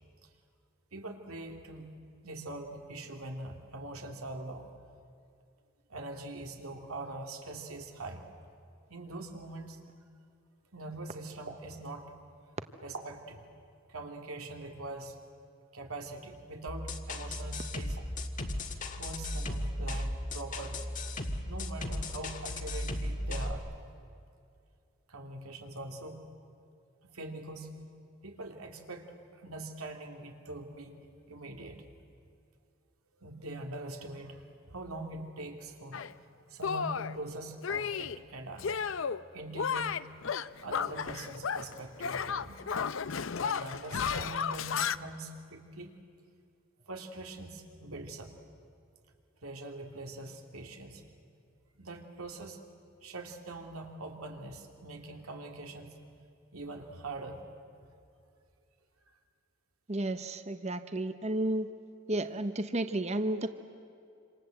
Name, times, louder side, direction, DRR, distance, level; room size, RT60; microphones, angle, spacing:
voice 1, 0.9-1.9 2.2-4.8 5.9-8.2 8.9-9.9 10.7-12.1 12.8-13.4 13.9-15.2 15.7-18.1 19.0-20.9 21.4-23.7 25.1-26.2 27.0-27.7 28.2-31.0 31.3-31.8 33.2-38.8 39.3-40.0 40.6-42.6 43.3-45.9 46.8-48.3 49.4-51.0 51.8-52.6 53.0-56.0 56.5-57.4, right 2 dB, 90° right, 3 dB, 2.9 m, -43 dB
sound 1, 16.7-23.5, left 1 dB, 40° left, 1.6 m, -36 dB
Shatter, 35.9-36.1 36.6-37.2 37.6-38.2 38.6-39.2 39.5-41.7 42.0-45.0, left 6 dB, 65° left, 0.6 m, -33 dB
voice 2, 59.9-61.7 62.1-63.5, right 1 dB, 30° right, 9 dB, 0.8 m, -32 dB
27.5 x 26.5 x 7.9 m, 2.5 s
head